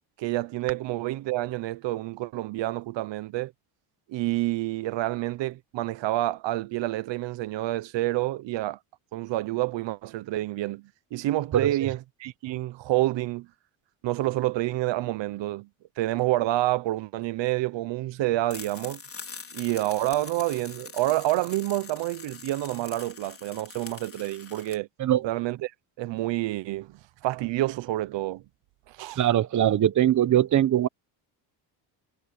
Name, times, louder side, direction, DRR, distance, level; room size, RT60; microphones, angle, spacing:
voice 1, 0.2-3.5 4.1-8.8 9.1-13.5 14.0-15.7 16.0-19.0 19.5-24.9 25.2-25.7 26.0-28.4 28.9-29.2, right 16 dB, 70° right, 1.0 m, -28 dB
sound 1, 18.5-24.8, left 5 dB, 30° left, 4.5 m, -44 dB
voice 2, 29.2-30.9, right 11 dB, 40° right, 1.0 m, -21 dB
cardioid pair, 115°, 46 cm